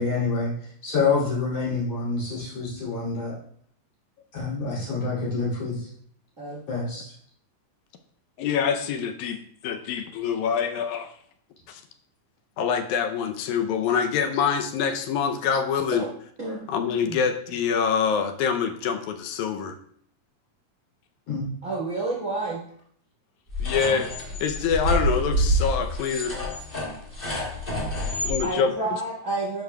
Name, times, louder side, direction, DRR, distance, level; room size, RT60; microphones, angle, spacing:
voice 1, 0.0-3.3 4.3-5.9 6.7-7.1 21.3-21.5, left 4 dB, 50° left, -6 dB, 3.8 m, -27 dB
voice 2, 8.4-11.1 11.7-11.8 12.6-16.0 16.7-19.7 23.6-24.1 24.4-26.3 28.1-28.7, left 6 dB, 80° left, 6 dB, 1.8 m, -25 dB
voice 3, 21.6-22.6 28.4-29.6, right 2 dB, 90° right, -5 dB, 0.6 m, -29 dB
sound 1, 23.5-28.4, equal, 20° left, 1.5 m, -27 dB
11.5 x 5.8 x 2.2 m, 0.63 s
omnidirectional pair, 3.9 m